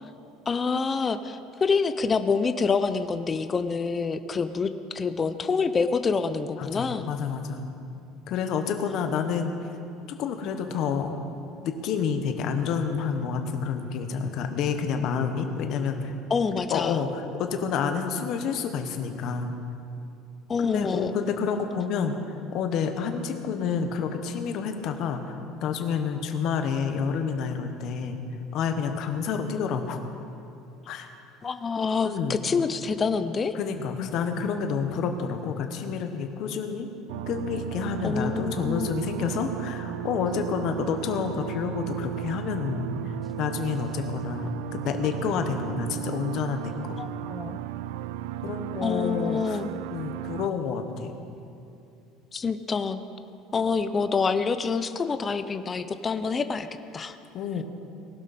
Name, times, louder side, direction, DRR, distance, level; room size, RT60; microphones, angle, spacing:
voice 1, 0.5-7.1 16.3-17.0 20.5-21.1 31.4-33.5 38.0-38.9 47.0-47.6 48.8-49.7 52.3-53.0 53.5-56.7 56.9-57.2, left 5 dB, 15° left, 11 dB, 0.5 m, -27 dB
voice 2, 6.6-7.6 8.3-9.5 10.2-11.1 11.6-16.1 16.7-19.5 20.6-22.2 22.5-28.2 28.5-30.0 30.9-31.1 32.0-32.4 33.5-36.9 37.3-47.0 48.4-49.6 49.9-51.2 57.3-57.6, left 6 dB, 40° left, 6 dB, 1.0 m, -29 dB
sound 1, 37.1-50.5, right 13 dB, 85° right, 0.3 m, -35 dB
19.0 x 11.5 x 4.2 m, 2.7 s
cardioid pair, 175°, 0 cm